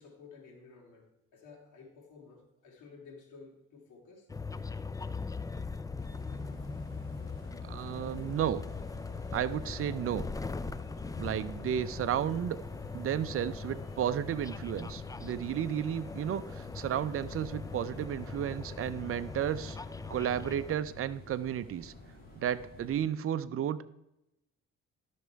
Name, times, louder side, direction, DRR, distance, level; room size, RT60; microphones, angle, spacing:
voice 1, 0.0-4.3, left 4 dB, 80° left, 0 dB, 2.8 m, -53 dB
sound 1, 4.3-20.8, left 4 dB, 10° left, 0.4 m, -40 dB
sound 2, 6.0-23.0, left 1 dB, 30° left, 4.2 m, -52 dB
voice 2, 7.6-8.6 9.3-10.2 11.2-12.6 12.9-19.8 20.1-21.9 22.4-23.9, right 10 dB, 45° right, 12 dB, 0.6 m, -33 dB
12.0 x 6.3 x 4.6 m, 0.88 s
cardioid pair, 90°, 30 cm